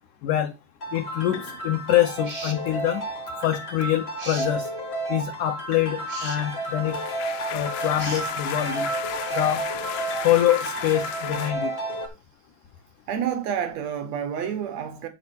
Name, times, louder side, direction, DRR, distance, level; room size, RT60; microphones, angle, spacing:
voice 1, 0.2-0.5 0.9-3.0 3.4-4.7 5.1-7.0 7.5-8.9 9.3-9.7 10.2-11.7, left 13 dB, 75° left, 1.9 m, -25 dB
sound 1, 0.8-12.1, right 1 dB, 45° left, 0.8 m, -31 dB
sound 2, 2.2-2.6 4.2-4.5 6.1-6.4 8.0-8.3, right 2 dB, 55° right, 0.5 m, -37 dB
sound 3, 6.5-11.5, left 14 dB, 90° left, 2.9 m, -35 dB
voice 2, 13.1-15.1, right 8 dB, 80° right, 1.5 m, -29 dB
9.6 x 5.8 x 4.4 m
omnidirectional pair, 4.7 m